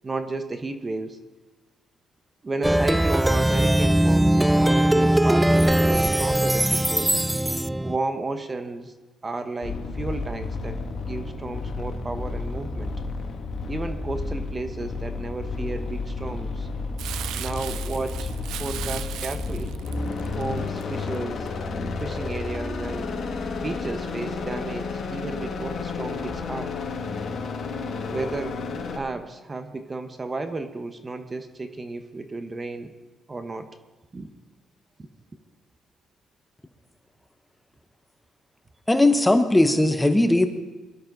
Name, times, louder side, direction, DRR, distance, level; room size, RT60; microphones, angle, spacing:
voice 1, 0.0-1.2 2.4-7.1 7.8-8.9 9.2-12.9 13.7-16.7 17.3-18.3 18.6-19.8 20.4-21.5 22.0-23.1 23.6-26.7 28.1-28.6 28.9-32.9 33.3-33.7 34.1-34.3 35.0-35.1, right 3 dB, 25° right, 8 dB, 1.2 m, -33 dB
Plucked string instrument, 2.6-8.0, right 1 dB, 10° right, 0.3 m, -20 dB
sound 1, 9.6-29.0, left 4 dB, 55° left, 2.2 m, -31 dB
Crumpling crinkling, 17.0-21.5 22.0-22.1, right 12 dB, 85° right, 0.5 m, -37 dB
voice 2, 38.9-40.5, left 1 dB, 10° left, 7 dB, 1.1 m, -18 dB
22.0 x 12.5 x 4.0 m, 1.2 s
cardioid pair, 90°, 0 cm